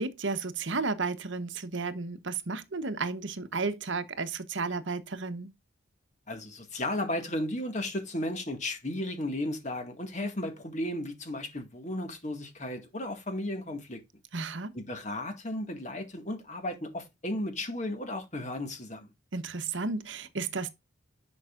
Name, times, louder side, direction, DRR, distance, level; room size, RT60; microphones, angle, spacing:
voice 1, 0.0-5.5 14.3-14.8 19.3-20.7, right 4 dB, 65° right, 1.0 m, -33 dB
voice 2, 6.3-14.0 14.7-19.1, left 1 dB, 35° left, 1.9 m, -34 dB
10.5 x 5.3 x 2.5 m
head